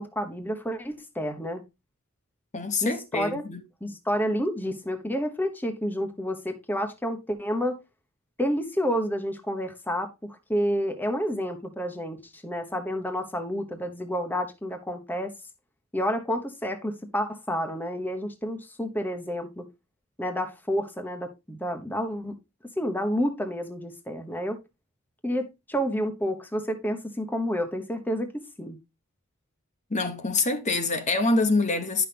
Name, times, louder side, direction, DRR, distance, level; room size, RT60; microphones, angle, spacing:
voice 1, 0.0-1.6 2.8-3.4 3.8-7.8 8.4-10.1 10.5-15.3 15.9-19.7 20.2-22.3 22.8-24.6 25.2-28.3 28.6-28.8, equal, 10° left, 1.1 m, -29 dB
voice 2, 2.5-3.6 29.9-32.1, left 3 dB, 35° left, 1.2 m, -25 dB
11.0 x 5.9 x 3.5 m
head